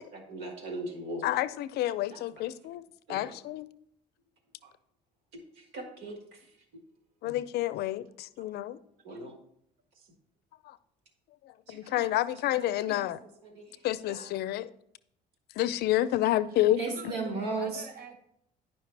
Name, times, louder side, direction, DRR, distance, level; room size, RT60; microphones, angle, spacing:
voice 1, 0.1-1.2 2.1-2.2 3.1-3.3 5.6-6.4 7.2-7.4 9.0-9.3 11.7-12.1 12.5-13.1 13.4-13.8 14.1-14.3 16.8-17.9, right 3 dB, 90° right, 1.6 m, -38 dB
voice 2, 1.2-2.8 3.1-3.7 7.2-8.8 10.7-10.8 11.7-13.2 13.8-14.7 15.6-16.8, left 14 dB, 75° left, 0.4 m, -29 dB
voice 3, 16.5-18.2, right 4 dB, 60° right, 0.9 m, -46 dB
10.5 x 5.4 x 3.3 m
cardioid pair, 110°, 17 cm